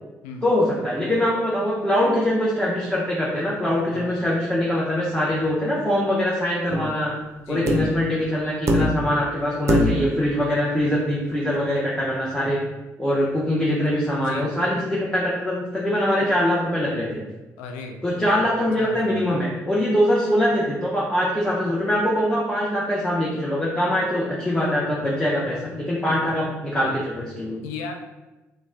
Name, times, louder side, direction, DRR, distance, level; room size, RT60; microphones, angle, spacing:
voice 1, 0.4-7.1 7.5-12.6 13.0-17.2 18.0-27.6, left 1 dB, 10° left, -5 dB, 0.7 m, -23 dB
sound 1, 6.7-7.0 7.7-8.0 8.7-9.2 9.7-10.2 11.6-11.7, equal, 40° right, 0.5 m, -22 dB
voice 2, 7.3-7.7 14.2-14.5 17.6-19.3 26.1-26.2 27.6-28.0, left 4 dB, 70° left, 4 dB, 0.4 m, -36 dB
3.1 x 2.1 x 3.7 m, 1.1 s
figure-of-eight pair, 40°, 8 cm